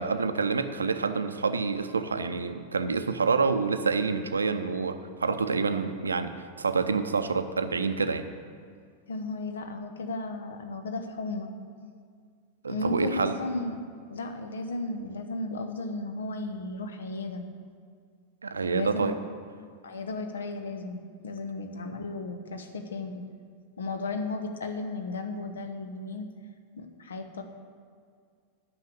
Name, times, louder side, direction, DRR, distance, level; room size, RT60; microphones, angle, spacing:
voice 1, 0.0-8.2 12.6-13.4 18.4-19.1, right 4 dB, 75° right, 10 dB, 0.6 m, -27 dB
voice 2, 9.1-11.5 12.7-17.5 18.7-19.1 19.8-23.2 23.8-26.3 26.8-27.4, left 2 dB, 65° left, 6 dB, 1.0 m, -34 dB
9.6 x 6.3 x 8.3 m, 2.1 s
figure-of-eight pair, 90°, 0 cm